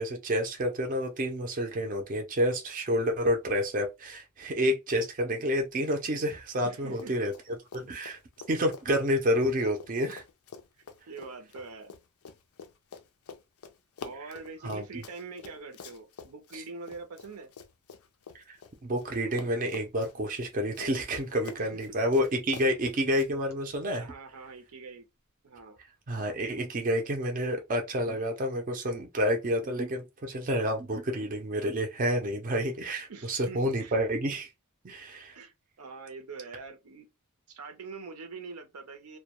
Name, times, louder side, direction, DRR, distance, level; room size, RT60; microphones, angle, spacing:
voice 1, 0.0-7.3 7.7-8.2 8.5-10.2 14.6-14.8 18.5-18.6 18.8-24.1 26.1-34.5 34.8-35.4, equal, 35° right, 0.5 m, -29 dB
voice 2, 6.6-7.1 11.1-12.0 14.0-17.5 21.6-21.8 24.0-25.1 25.4-25.8 33.1-34.0 35.3-37.1 37.5-39.2, right 4 dB, 85° right, 0.6 m, -44 dB
Run, 6.9-7.5 7.7-19.1 19.3-23.3, left 5 dB, 75° left, 0.4 m, -47 dB
2.2 x 2.1 x 2.8 m
head